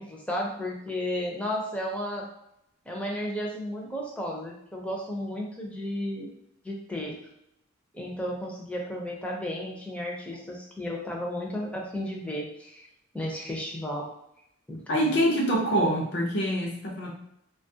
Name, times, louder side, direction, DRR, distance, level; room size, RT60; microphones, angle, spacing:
voice 1, 0.0-2.2 2.9-6.3 6.6-7.2 7.9-12.9 13.1-14.1 14.7-15.0, left 1 dB, 5° left, -1 dB, 0.5 m, -33 dB
voice 2, 14.9-17.1, equal, 60° left, -1 dB, 0.6 m, -25 dB
3.3 x 2.3 x 2.7 m, 0.78 s
head